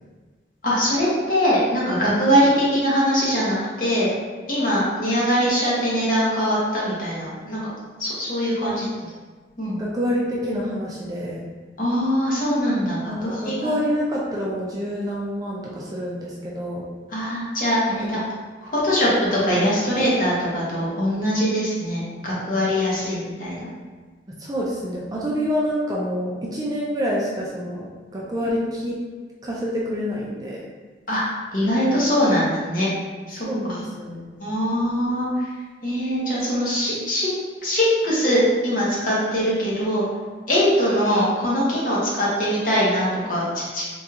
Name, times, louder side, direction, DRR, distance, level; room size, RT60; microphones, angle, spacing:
voice 1, 0.6-4.1 4.5-7.6 8.0-8.8 9.6-9.8 11.8-13.7 17.1-18.2 18.6-23.7 28.4-28.5 31.1-31.2 31.5-32.9 33.3-33.5 34.4-35.5 35.8-37.3 37.6-40.0 40.5-43.8, equal, 45° left, -7 dB, 1.0 m, -22 dB
voice 2, 9.8-11.4 13.1-16.8 18.0-18.2 24.4-27.9 28.1-29.0 29.4-30.6 33.4-34.3, equal, 20° right, -5 dB, 0.4 m, -27 dB
3.5 x 2.3 x 2.8 m, 1.4 s
head